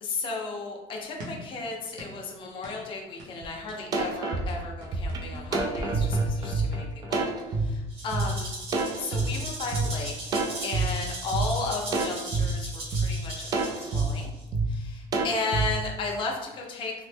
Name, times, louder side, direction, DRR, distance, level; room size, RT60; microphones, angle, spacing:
voice 1, 0.0-7.2 7.6-8.5 8.9-10.4 10.6-14.3 14.7-16.9, left 3 dB, 40° left, 0 dB, 0.5 m, -34 dB
sound 1, 1.2-1.5 2.0-2.3 2.6-2.8 3.2-3.4 3.7-7.0, equal, 80° right, 0.8 m, -40 dB
sound 2, 3.4-3.5 3.9-7.7 8.1-8.3 8.7-9.9 10.3-10.9 11.3-11.5 11.9-12.5 12.9-13.1 13.5-14.1 14.5-14.7 15.1-15.7, right 3 dB, 30° right, 0.3 m, -27 dB
Rattle (instrument), 7.9-14.4, right 1 dB, 45° right, 0.9 m, -39 dB
3.0 x 2.1 x 3.2 m, 1.0 s
cardioid pair, 160°, 14 cm